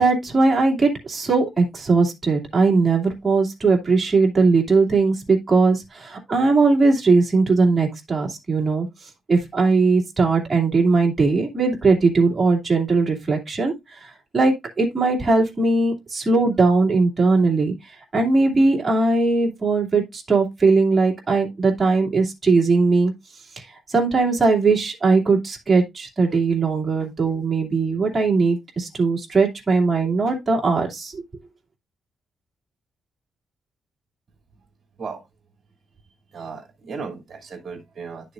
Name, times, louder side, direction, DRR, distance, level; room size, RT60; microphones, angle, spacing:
voice 1, 0.0-8.9 9.3-13.7 14.0-17.7 18.1-23.1 23.6-31.2, right 3 dB, 20° right, 2.5 m, -19 dB
voice 2, 36.3-38.3, right 5 dB, 35° right, 2.6 m, -35 dB
10.5 x 6.7 x 2.5 m
cardioid pair, 150°, 0 cm